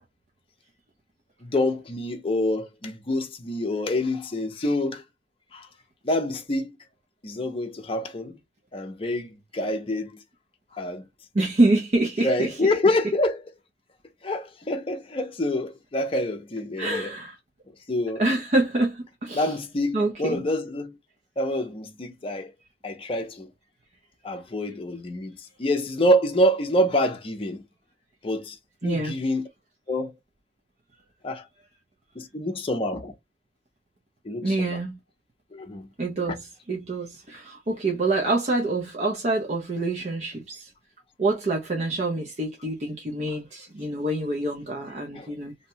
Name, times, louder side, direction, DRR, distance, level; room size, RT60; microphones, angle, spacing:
voice 1, 1.4-5.0 5.5-5.7 6.0-6.7 7.2-8.4 8.7-10.1 10.8-11.0 12.2-13.4 14.2-17.1 17.9-18.2 19.3-20.9 21.4-22.5 22.8-23.5 24.2-27.6 28.2-28.6 28.8-29.5 29.9-30.1 31.2-31.4 32.2-33.1 34.3-34.7 35.5-35.9 45.1-45.3, left 1 dB, 30° left, 0.6 m, -26 dB
voice 2, 11.3-12.7 16.8-17.4 18.2-19.6 19.9-20.4 28.8-29.2 34.4-35.0 36.0-40.7 41.2-45.5, right 2 dB, 40° right, 0.5 m, -26 dB
2.7 x 2.2 x 2.7 m
head